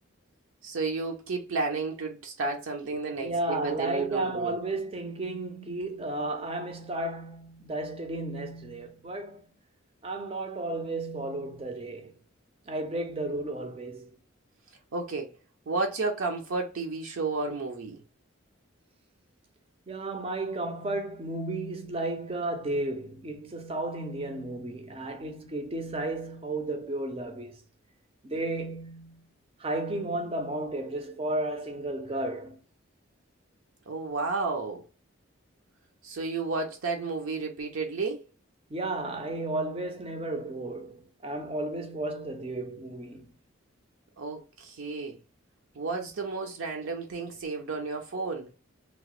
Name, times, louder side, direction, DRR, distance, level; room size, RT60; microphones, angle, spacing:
voice 1, 0.6-4.6 14.9-15.3 15.7-18.0 33.9-34.8 36.0-38.2 44.2-45.2 45.7-48.5, right 3 dB, 75° right, 0.5 m, -32 dB
voice 2, 3.2-9.4 10.0-12.1 12.7-14.2 19.9-27.5 28.2-29.2 29.6-32.6 38.7-43.3, right 2 dB, 25° right, 0.4 m, -33 dB
2.9 x 2.1 x 2.9 m
head